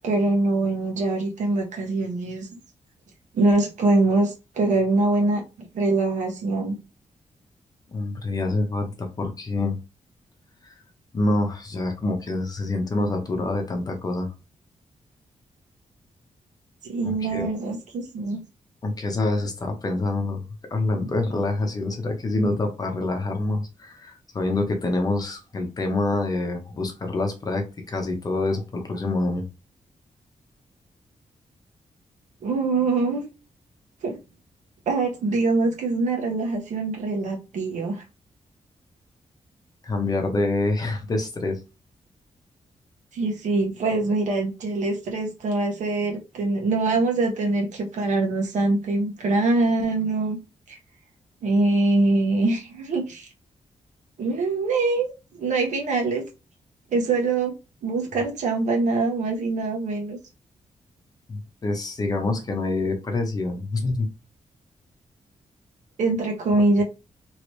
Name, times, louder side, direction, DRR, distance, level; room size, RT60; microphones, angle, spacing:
voice 1, 0.0-2.5 3.3-5.4 5.7-6.8 16.8-18.4 32.4-33.3 34.0-34.2 34.9-38.0 43.1-50.4 50.7-50.8 51.4-53.3 54.2-56.2 56.9-57.5 57.8-60.2 66.0-66.8, right 3 dB, 85° right, 1.1 m, -23 dB
voice 2, 7.9-9.8 10.6-10.7 11.1-14.3 17.0-17.5 18.8-20.4 20.7-29.4 39.8-41.6 61.3-64.1 66.6-66.7, left 2 dB, 30° left, 0.8 m, -26 dB
3.0 x 2.9 x 3.0 m
wide cardioid pair, 175°, 12 cm